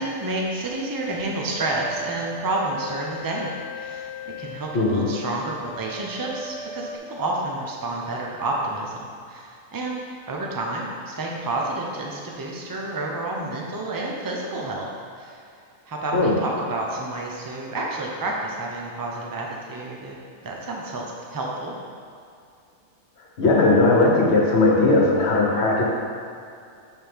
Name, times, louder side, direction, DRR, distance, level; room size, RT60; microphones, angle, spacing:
voice 1, 0.0-4.1 4.4-9.0 9.3-10.0 10.3-14.9 15.2-15.4 15.9-20.2 20.4-21.7, right 2 dB, 30° right, -2 dB, 0.3 m, -29 dB
sound 1, 1.5-7.0, left 1 dB, 60° left, 1.2 m, -38 dB
voice 2, 4.7-5.1 16.1-16.4 23.4-25.8, left 2 dB, 45° left, -3 dB, 1.3 m, -18 dB
10.5 x 3.9 x 3.5 m, 2.4 s
omnidirectional pair, 1.7 m